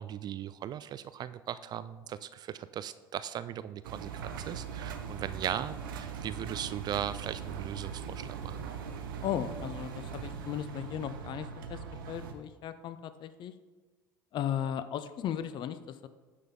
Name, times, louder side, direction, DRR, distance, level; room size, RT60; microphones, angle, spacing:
voice 1, 0.0-8.6, right 10 dB, 35° right, 14 dB, 0.3 m, -38 dB
Engine, 3.8-12.3, right 6 dB, 75° right, 0.8 m, -40 dB
voice 2, 9.2-11.8 12.1-13.5 14.3-16.1, left 10 dB, 40° left, 12 dB, 0.5 m, -36 dB
9.8 x 5.7 x 3.8 m, 1.3 s
hypercardioid pair, 70°, 11 cm